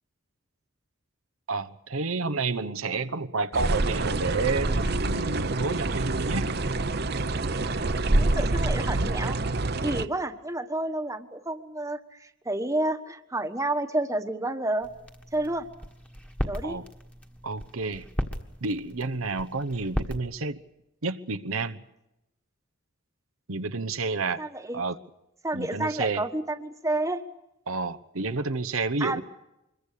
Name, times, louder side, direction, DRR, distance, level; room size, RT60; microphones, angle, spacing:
voice 1, 1.5-6.5 16.6-16.8 17.4-18.1 18.6-20.6 21.0-21.8 23.5-24.4 24.7-25.0 25.5-26.2 27.7-29.2, right 3 dB, 90° right, 12 dB, 1.0 m, -30 dB
sound 1, 3.5-10.1, right 2 dB, 50° right, 0.9 m, -26 dB
voice 2, 8.2-9.4 9.8-14.9 15.3-15.7 16.5-16.8 24.4-24.8 25.4-27.2 29.0-29.2, right 2 dB, 15° right, 7 dB, 1.3 m, -30 dB
sound 2, 14.8-20.2, equal, 5° left, 1.6 m, -36 dB
25.5 x 22.5 x 6.7 m, 0.90 s
head